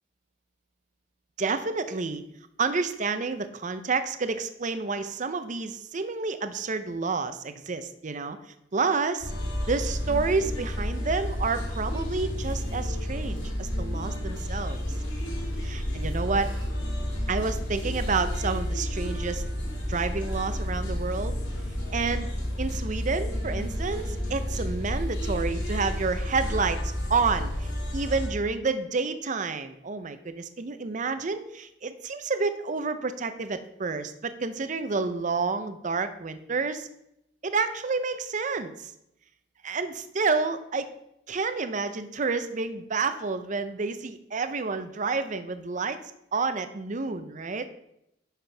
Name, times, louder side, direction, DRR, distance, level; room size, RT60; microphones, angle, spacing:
voice 1, 1.4-2.2 2.6-8.4 8.7-9.3 9.7-14.8 15.6-16.5 17.3-19.4 19.9-21.4 21.9-22.3 22.6-26.8 27.1-36.9 37.4-38.9 39.6-40.9 41.3-46.0 46.3-47.7, right 4 dB, 45° right, 10 dB, 0.6 m, -29 dB
sound 1, 9.2-28.3, equal, 85° left, 2.2 m, -31 dB
10.5 x 5.8 x 3.4 m, 0.82 s
head